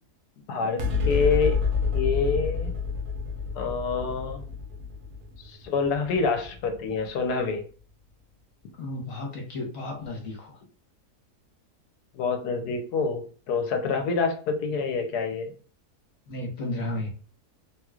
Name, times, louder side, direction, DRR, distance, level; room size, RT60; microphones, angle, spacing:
voice 1, 0.5-1.6 1.9-2.7 3.5-4.4 5.4-7.6 12.1-15.5, left 4 dB, 75° left, 5 dB, 1.3 m, -27 dB
sound 1, 0.8-7.5, left 5 dB, 70° right, 1.1 m, -29 dB
voice 2, 8.8-10.6 16.3-17.1, left 2 dB, 60° left, 2 dB, 1.4 m, -33 dB
3.6 x 3.0 x 2.4 m, 0.40 s
omnidirectional pair, 1.7 m